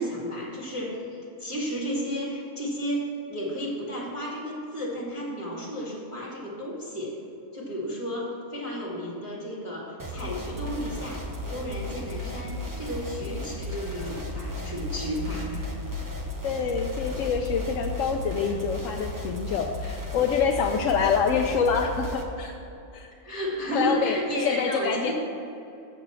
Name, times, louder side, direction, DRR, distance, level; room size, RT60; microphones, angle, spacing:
voice 1, 0.0-7.2 7.5-15.7 23.2-25.1, equal, 25° left, -4 dB, 2.3 m, -33 dB
sound 1, 10.0-22.2, left 1 dB, 20° right, 0.8 m, -35 dB
sound 2, 13.7-19.0, left 4 dB, 60° right, 2.2 m, -40 dB
voice 2, 16.4-22.5 22.9-23.1 23.7-24.2 24.4-25.1, left 6 dB, 80° left, 3 dB, 1.0 m, -26 dB
6.9 x 6.7 x 7.5 m, 2.7 s
omnidirectional pair, 1.3 m